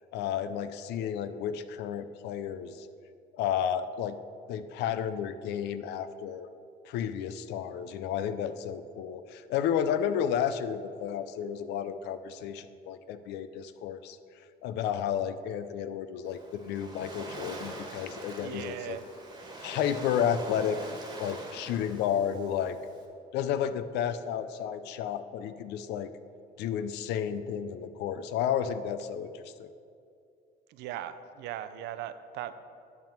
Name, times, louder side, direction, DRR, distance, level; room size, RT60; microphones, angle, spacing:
voice 1, 0.1-2.9 3.3-4.2 4.5-6.5 6.9-14.2 14.6-19.0 19.6-20.8 21.2-22.8 23.3-26.1 26.6-29.7, left 9 dB, 85° left, 12 dB, 0.5 m, -32 dB
Waves surf, 16.3-23.1, right 2 dB, 25° right, 1.5 m, -43 dB
voice 2, 18.4-19.0 30.7-32.5, right 12 dB, 85° right, 12 dB, 0.5 m, -38 dB
10.5 x 3.6 x 7.3 m, 2.4 s
cardioid pair, 110°, 17 cm